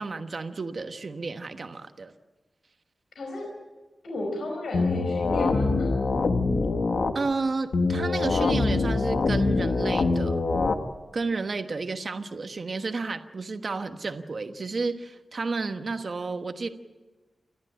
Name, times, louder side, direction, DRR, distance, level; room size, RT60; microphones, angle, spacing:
voice 1, 0.0-2.1 7.1-10.4 11.1-16.7, right 3 dB, 45° right, 8 dB, 1.2 m, -31 dB
voice 2, 3.2-3.5 4.0-5.9, left 1 dB, 80° left, 1 dB, 4.9 m, -34 dB
sound 1, 4.7-7.1 7.7-10.7, left 3 dB, 65° left, 1.6 m, -24 dB
29.0 x 13.0 x 8.9 m, 1.2 s
wide cardioid pair, 150°, 0 cm